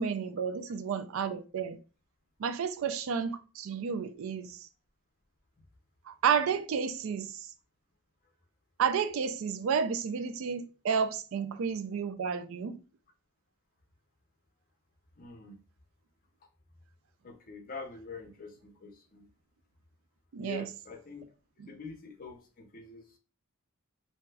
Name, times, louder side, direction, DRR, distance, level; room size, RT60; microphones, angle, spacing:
voice 1, 0.0-1.8 2.4-4.6 6.1-7.3 8.8-12.8 20.3-20.6 21.6-21.7, right 6 dB, 70° right, 0.4 m, -31 dB
voice 2, 15.2-15.6 17.2-19.3 20.4-21.3 21.7-23.1, left 4 dB, 40° left, 0.5 m, -45 dB
2.6 x 2.3 x 3.2 m
head